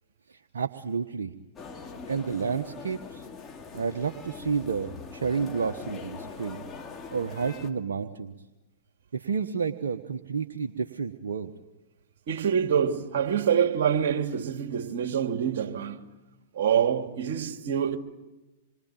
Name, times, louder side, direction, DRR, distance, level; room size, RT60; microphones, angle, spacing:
voice 1, 0.3-1.3 2.1-3.3 3.7-6.6 7.1-8.3 9.1-11.5, right 5 dB, 75° right, 1.1 m, -30 dB
sound 1, 1.6-7.7, left 5 dB, 20° left, 2.7 m, -42 dB
voice 2, 12.3-16.0 16.5-18.0, right 8 dB, 55° right, 2.8 m, -26 dB
27.0 x 23.0 x 9.1 m
figure-of-eight pair, 105°, 0 cm